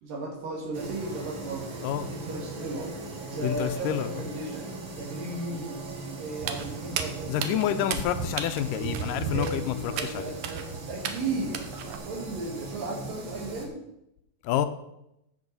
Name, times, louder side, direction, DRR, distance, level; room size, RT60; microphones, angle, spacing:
voice 1, 0.0-1.8 2.1-2.9 3.3-4.7 5.0-5.8 6.2-8.0 8.6-11.6 12.1-13.8, right 2 dB, 90° right, -3 dB, 3.7 m, -35 dB
sound 1, 0.7-13.7, right 3 dB, 45° right, 1.9 m, -39 dB
voice 2, 3.4-4.1 7.3-10.3 14.4-14.7, left 11 dB, 85° left, 10 dB, 2.2 m, -28 dB
Walk footsteps, 6.4-12.0, right 7 dB, 70° right, 1.7 m, -35 dB
15.0 x 6.3 x 4.1 m, 0.83 s
omnidirectional pair, 3.8 m